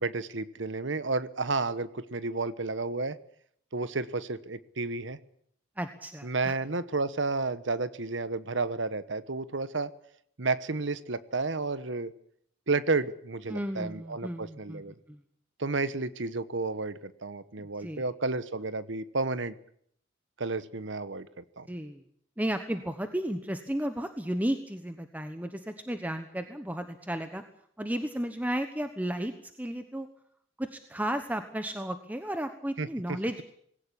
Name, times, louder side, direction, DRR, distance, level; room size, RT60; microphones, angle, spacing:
voice 1, 0.0-3.2 3.7-5.2 6.2-9.9 10.4-12.1 12.7-14.9 15.6-19.6 20.4-21.7 32.8-33.2, right 3 dB, 70° right, 15 dB, 1.2 m, -31 dB
voice 2, 5.8-6.6 13.5-14.8 15.1-15.2 17.6-18.0 21.7-22.0 22.4-27.4 27.8-29.3 29.6-30.1 30.6-33.4, right 1 dB, 10° right, 8 dB, 1.2 m, -33 dB
20.0 x 17.5 x 10.0 m, 0.67 s
head